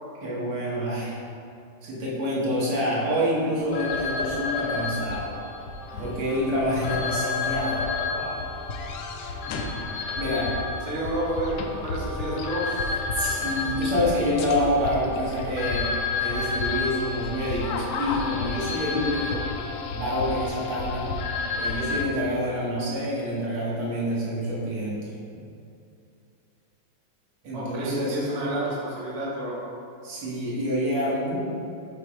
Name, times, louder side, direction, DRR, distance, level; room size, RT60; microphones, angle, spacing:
voice 1, 0.2-1.2 1.8-5.4 6.0-7.8 8.1-8.5 10.2-10.5 13.1-15.9 16.2-19.4 19.9-21.1 21.5-25.0 27.4-28.2 30.0-31.4, equal, 85° right, -6 dB, 2.3 m, -27 dB
sound 1, 3.6-22.0, left 4 dB, 75° left, 1.2 m, -30 dB
voice 2, 10.9-13.0 27.5-29.6, right 1 dB, 30° right, -5 dB, 0.7 m, -30 dB
7.0 x 3.0 x 4.7 m, 2.6 s
omnidirectional pair, 2.3 m